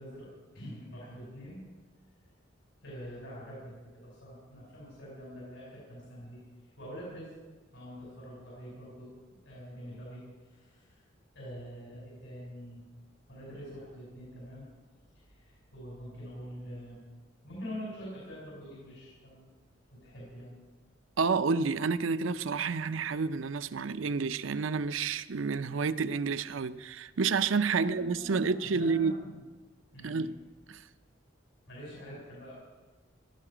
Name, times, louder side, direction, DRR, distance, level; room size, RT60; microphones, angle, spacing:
voice 1, 0.0-1.6 2.8-7.3 7.7-9.1 9.4-11.0 11.3-12.8 13.3-14.7 15.1-17.1 17.4-19.4 19.9-20.6 27.7-29.4 29.9-30.3 31.7-32.5, equal, 85° left, 5.6 m, -45 dB
voice 2, 21.2-29.1 30.0-30.4 30.7-30.8, right 5 dB, 85° right, 0.6 m, -29 dB
16.5 x 12.5 x 5.0 m
head